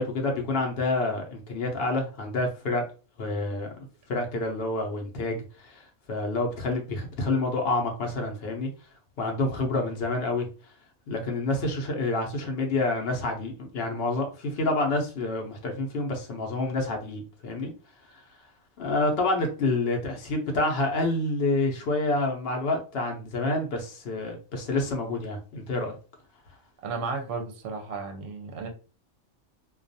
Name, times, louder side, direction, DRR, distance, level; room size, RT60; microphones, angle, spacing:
voice 1, 0.0-2.8 3.2-3.7 4.1-5.8 6.1-8.7 9.2-10.5 11.1-17.7 18.1-18.2 18.8-25.9, left 2 dB, 60° left, 2 dB, 0.7 m, -28 dB
voice 2, 26.8-28.7, right 4 dB, 65° right, 3 dB, 0.8 m, -33 dB
2.3 x 2.2 x 2.6 m, 0.36 s
omnidirectional pair, 1.3 m